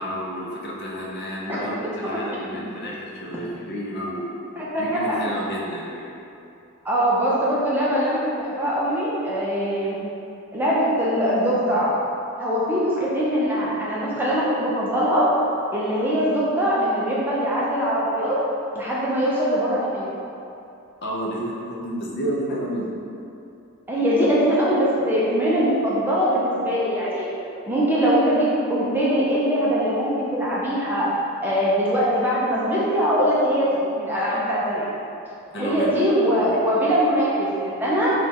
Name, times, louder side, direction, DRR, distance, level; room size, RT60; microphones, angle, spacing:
voice 1, 0.0-4.3 4.8-6.1 21.0-22.9 35.5-35.9 36.4-36.6, equal, 50° left, -4 dB, 0.6 m, -30 dB
voice 2, 4.6-5.2 6.8-10.0 10.5-11.9 12.4-15.3 15.7-18.4 18.7-20.1 23.9-27.3 27.7-31.1 31.4-33.7 34.0-34.8 35.6-38.1, equal, 10° right, -7 dB, 0.5 m, -22 dB
3.2 x 2.3 x 4.2 m, 2.7 s
head